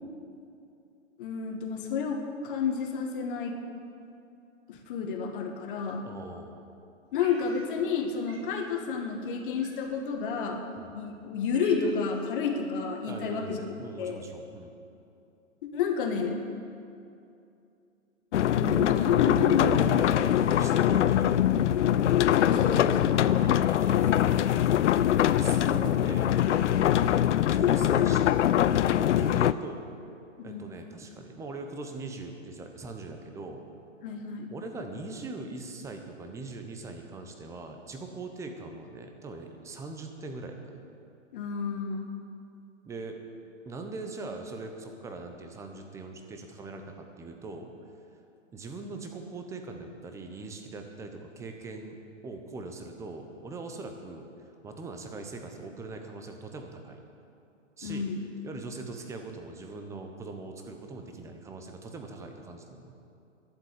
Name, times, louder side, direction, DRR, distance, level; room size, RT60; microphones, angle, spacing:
voice 1, 1.2-3.6 4.7-6.1 7.1-10.6 10.9-13.6 14.0-14.3 15.7-16.4 18.3-20.0 22.3-23.2 30.4-30.7 34.0-34.5 41.3-42.2 57.8-58.2, left 5 dB, 40° left, 3 dB, 1.6 m, -30 dB
voice 2, 6.0-6.5 10.8-11.0 13.1-14.7 19.8-22.0 23.2-24.2 25.3-27.2 27.5-28.8 29.2-29.9 30.4-33.6 34.5-40.8 42.8-43.2 43.7-47.7 48.5-54.3 54.6-57.0 57.8-58.1 58.4-62.9, right 3 dB, 5° right, 4 dB, 0.8 m, -41 dB
Cat, 7.2-8.0 8.3-8.5 9.6-10.1 10.8-10.9 11.2-12.2, right 2 dB, 50° right, 3.6 m, -50 dB
sound 1, 18.3-29.5, left 11 dB, 65° left, 0.5 m, -23 dB
11.5 x 7.6 x 9.6 m, 2.6 s
hypercardioid pair, 135°, 39 cm